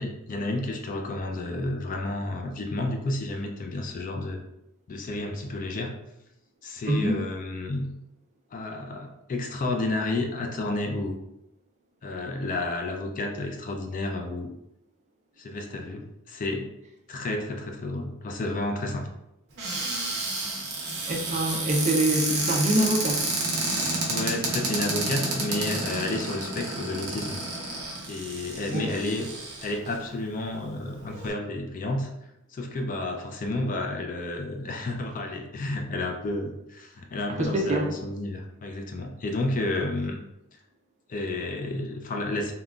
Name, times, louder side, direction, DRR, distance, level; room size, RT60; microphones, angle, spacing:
voice 1, 0.0-4.4 4.9-5.9 6.6-7.9 8.5-11.1 12.0-14.5 15.4-16.7 17.1-19.1 24.1-27.4 28.1-29.3 29.6-32.1 32.5-40.2 41.1-42.5, left 2 dB, 40° left, 3 dB, 0.4 m, -31 dB
voice 2, 6.9-7.2 21.1-23.3 28.7-28.9 37.4-37.9, right 1 dB, 35° right, 1 dB, 0.5 m, -25 dB
Cupboard open or close, 19.6-29.9 30.6-30.7 31.0-31.3, right 2 dB, 50° right, 0.8 m, -30 dB
3.7 x 2.2 x 2.3 m, 0.84 s
head